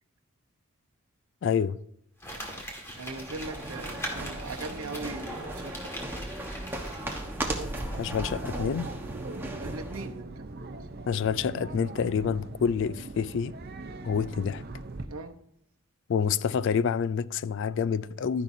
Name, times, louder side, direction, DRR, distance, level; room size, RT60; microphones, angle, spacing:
voice 1, 1.4-1.8 8.0-8.9 11.1-13.5 14.0-14.6 16.1-18.4, left 6 dB, 55° left, 0.3 m, -27 dB
Crumpling crinkling, 2.2-8.0 8.3-8.4, equal, 10° left, 1.8 m, -42 dB
voice 2, 2.6-6.1 9.6-11.0 15.0-15.3, right 3 dB, 75° right, 0.9 m, -40 dB
sound 1, 2.9-10.1, right 1 dB, 10° right, 1.1 m, -36 dB
sound 2, 7.6-15.1, right 2 dB, 45° right, 0.6 m, -41 dB
12.0 x 10.5 x 2.7 m
head